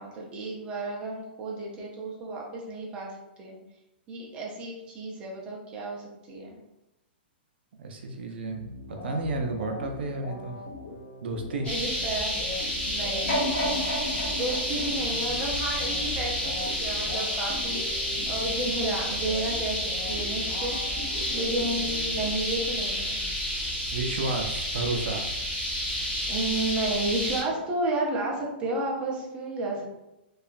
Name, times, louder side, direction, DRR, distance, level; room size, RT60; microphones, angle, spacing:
voice 1, 0.0-3.6 4.1-6.6 11.7-12.3 12.9-13.8 14.3-20.8 21.3-23.2 26.3-29.9, right 2 dB, 15° right, -3 dB, 0.5 m, -32 dB
voice 2, 7.8-10.6 11.2-11.7 23.9-25.3, right 2 dB, 70° right, 4 dB, 0.4 m, -32 dB
sound 1, 8.5-22.8, left 3 dB, 35° left, 0.5 m, -41 dB
sound 2, 11.6-27.4, equal, 15° left, 0.8 m, -30 dB
sound 3, 13.3-16.3 16.9-17.0, equal, 55° left, 1.2 m, -32 dB
2.8 x 2.3 x 2.5 m, 0.93 s
hypercardioid pair, 155°, 6 cm